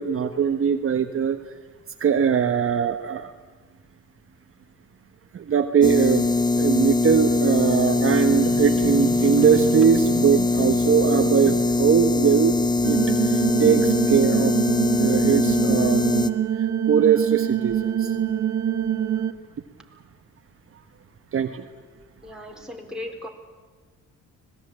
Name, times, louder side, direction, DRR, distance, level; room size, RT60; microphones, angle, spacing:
voice 1, 0.0-1.4 2.0-3.3 5.3-13.0 13.2-14.6 14.9-16.1 16.6-18.2 21.3-21.7, right 7 dB, 45° right, 6 dB, 1.3 m, -21 dB
sound 1, 5.8-16.3, left 3 dB, 15° left, 1.0 m, -22 dB
sound 2, 12.8-19.3, right 9 dB, 70° right, 1.4 m, -25 dB
voice 2, 22.2-23.3, left 1 dB, ahead, 1 dB, 4.4 m, -36 dB
25.5 x 19.5 x 8.8 m, 1.4 s
cardioid pair, 90°, 30 cm